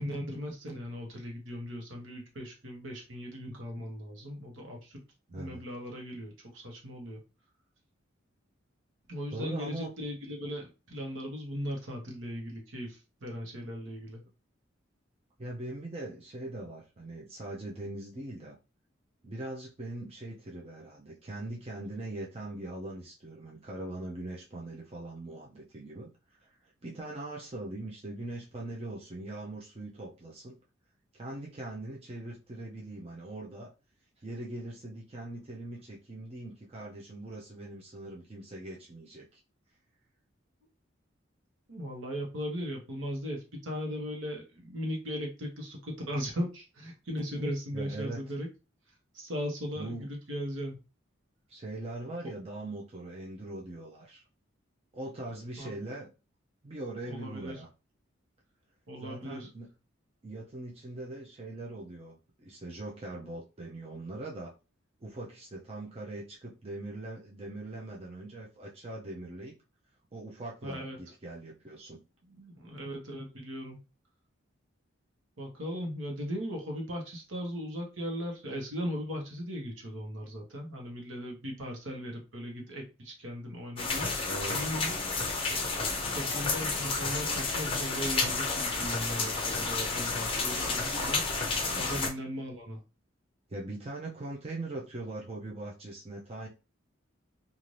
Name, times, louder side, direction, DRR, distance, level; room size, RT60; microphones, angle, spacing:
voice 1, 0.0-5.0 5.3-7.2 9.1-14.2 41.7-48.5 49.1-50.8 55.6-55.7 57.1-57.5 58.9-59.5 70.6-71.0 72.3-73.8 75.4-84.1 84.5-85.0 85.5-85.7 86.1-91.2 91.7-92.8, equal, 75° right, 1 dB, 1.0 m, -38 dB
voice 2, 5.3-5.6 9.3-9.9 15.4-18.6 19.2-26.1 26.4-30.6 31.1-33.7 34.2-39.4 47.7-48.3 49.8-50.1 51.5-54.2 54.9-56.1 56.6-57.7 59.0-59.7 60.2-64.5 65.0-69.5 70.1-72.0 84.2-84.7 91.8-92.0 93.5-96.5, right 2 dB, 30° right, -3 dB, 0.5 m, -41 dB
sound 1, 83.8-92.1, left 3 dB, 25° left, 0.6 m, -31 dB
2.6 x 2.5 x 3.1 m, 0.31 s
head